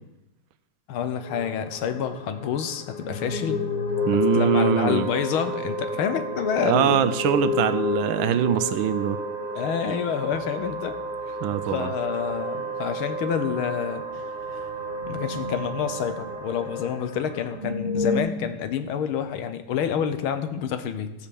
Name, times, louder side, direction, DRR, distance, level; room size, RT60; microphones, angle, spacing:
voice 1, 0.9-3.6 4.1-7.1 9.6-11.0 11.7-14.1 14.5-14.6 15.1-21.1, left 8 dB, 85° left, 9 dB, 1.8 m, -28 dB
sound 1, 1.2-17.6, left 5 dB, 55° left, 1.8 m, -44 dB
sound 2, 3.1-11.6 11.9-12.4 12.8-12.9 13.4-13.5 14.5-16.6 16.9-17.0 17.3-18.2, left 5 dB, 20° right, 2.0 m, -31 dB
Wind instrument woodwind instrument, 3.9-17.3, right 3 dB, 45° right, 1.6 m, -34 dB
voice 2, 4.0-5.1 6.6-9.2 11.4-11.9, right 9 dB, 75° right, 12 dB, 1.4 m, -23 dB
14.5 x 5.7 x 7.0 m, 0.93 s
omnidirectional pair, 2.3 m